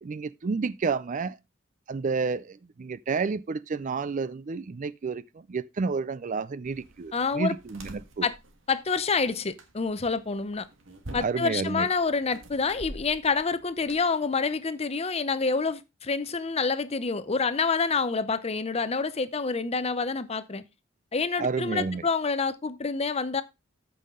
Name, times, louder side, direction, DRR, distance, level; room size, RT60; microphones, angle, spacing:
voice 1, 0.0-1.4 1.9-8.3 11.2-11.9 21.4-22.0, right 4 dB, 40° right, 0.4 m, -30 dB
sound 1, 6.6-14.0, right 1 dB, 80° right, 1.7 m, -46 dB
voice 2, 7.1-7.5 8.2-8.3 8.7-10.7 11.1-20.6 21.1-23.4, left 4 dB, 30° left, 0.7 m, -27 dB
14.0 x 5.6 x 3.7 m
head